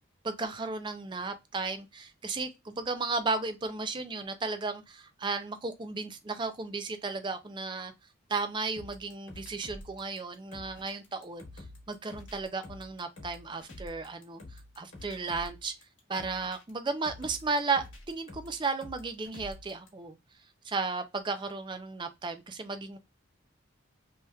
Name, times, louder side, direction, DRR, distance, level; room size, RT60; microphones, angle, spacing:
voice 1, 0.2-7.9 8.3-15.7 16.1-20.2 20.6-23.0, right 4 dB, 25° right, 0.4 m, -34 dB
sound 1, 8.8-19.9, left 1 dB, 65° left, 1.2 m, -48 dB
3.4 x 2.8 x 2.2 m
head